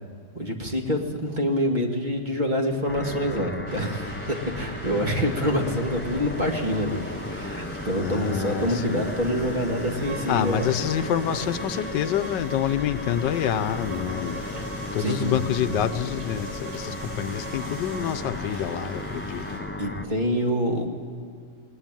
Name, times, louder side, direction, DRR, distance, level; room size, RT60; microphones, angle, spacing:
voice 1, 0.3-10.7 14.6-14.7 15.0-15.8 19.8-20.9, equal, 25° right, 2 dB, 2.1 m, -26 dB
sound 1, 2.9-20.1, left 1 dB, 20° left, 0.3 m, -35 dB
sound 2, 3.7-19.6, right 1 dB, 75° right, 4.6 m, -43 dB
voice 2, 8.0-9.0 10.3-14.4 14.9-19.7, left 10 dB, 85° left, 12 dB, 1.4 m, -27 dB
Bowed string instrument, 10.0-18.1, equal, 50° right, 3.9 m, -40 dB
21.0 x 19.0 x 9.1 m, 2.1 s
omnidirectional pair, 1.9 m